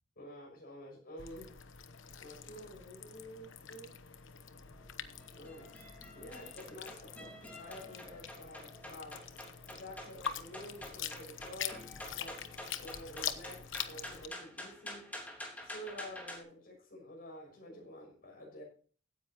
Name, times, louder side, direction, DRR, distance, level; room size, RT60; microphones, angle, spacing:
voice 1, 0.2-1.5 2.2-3.9 5.3-5.7 6.1-11.8 12.2-12.5 12.8-15.1 15.6-18.6, left 1 dB, 45° left, -1 dB, 6.5 m, -49 dB
sound 1, 1.2-14.3, left 8 dB, 65° left, 1.1 m, -45 dB
sound 2, 4.7-16.4, left 1 dB, 10° left, 3.3 m, -49 dB
16.5 x 10.0 x 3.0 m, 0.41 s
head